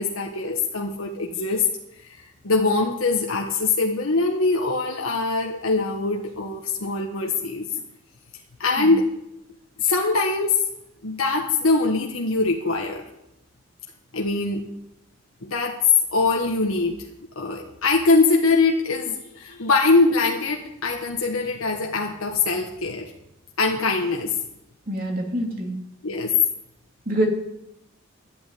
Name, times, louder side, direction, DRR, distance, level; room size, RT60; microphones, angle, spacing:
voice 1, 0.0-1.6 2.0-2.2 2.4-7.7 8.6-9.0 9.8-10.6 11.0-13.1 14.1-14.6 15.4-15.8 16.1-17.0 17.3-23.1 23.6-24.4 26.0-26.3, left 3 dB, 85° left, 0 dB, 1.5 m, -22 dB
voice 2, 24.9-25.7 27.1-27.3, right 1 dB, 45° right, 1 dB, 2.9 m, -25 dB
12.0 x 8.8 x 9.1 m, 0.84 s
head